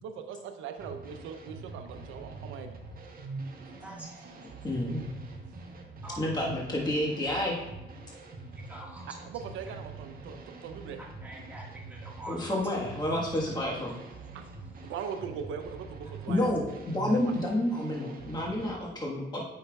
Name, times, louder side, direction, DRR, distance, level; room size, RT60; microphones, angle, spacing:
voice 1, 0.0-2.8 9.1-11.0 14.3-14.5 14.8-16.8 17.1-17.4, right 7 dB, 90° right, 7 dB, 0.7 m, -40 dB
sound 1, 0.8-18.7, right 3 dB, 45° right, 1.0 m, -44 dB
voice 2, 4.6-5.2 6.2-7.6 12.3-13.9 16.3-19.5, left 1 dB, 20° left, -3 dB, 1.4 m, -29 dB
voice 3, 8.7-9.0 11.2-12.5, right 1 dB, 5° right, -4 dB, 1.6 m, -44 dB
8.7 x 5.6 x 2.3 m, 0.97 s
cardioid pair, 90°, 20 cm